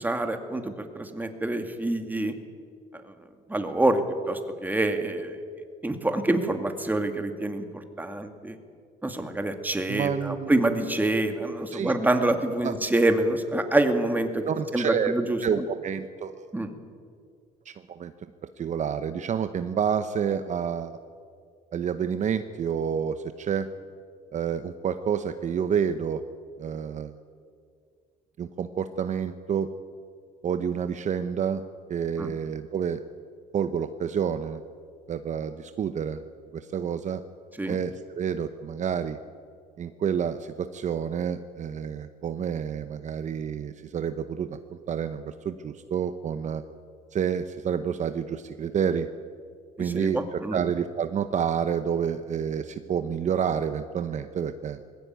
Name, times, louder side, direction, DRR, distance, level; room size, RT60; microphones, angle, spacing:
voice 1, 0.0-2.3 3.5-5.4 5.8-7.7 8.0-8.6 9.0-14.4 14.7-15.6 16.5-16.7 32.2-32.3 37.6-37.8 49.8-50.6, right 2 dB, 10° right, 6 dB, 2.2 m, -26 dB
voice 2, 9.9-10.5 11.7-11.9 12.6-12.7 14.5-15.1 15.4-16.4 17.7-18.1 18.6-21.0 21.7-23.7 24.3-26.2 26.6-27.1 28.4-29.7 30.4-31.6 31.9-33.0 33.5-34.6 35.1-36.2 36.5-37.2 37.7-39.2 39.8-46.6 47.1-49.1 49.8-54.8, right 7 dB, 45° right, 10 dB, 0.9 m, -29 dB
20.5 x 16.0 x 9.4 m, 2.2 s
cardioid pair, 110°, 17 cm